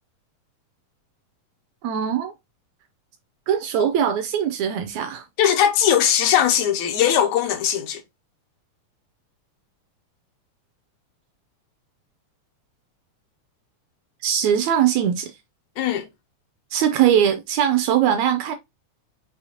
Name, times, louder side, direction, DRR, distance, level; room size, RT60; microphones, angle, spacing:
voice 1, 1.8-2.3 3.5-5.2 14.2-15.3 16.7-18.5, right 9 dB, 80° right, 1.7 m, -21 dB
voice 2, 5.4-8.0 15.8-16.0, left 9 dB, 75° left, 1.8 m, -19 dB
6.3 x 2.7 x 2.8 m
omnidirectional pair, 3.5 m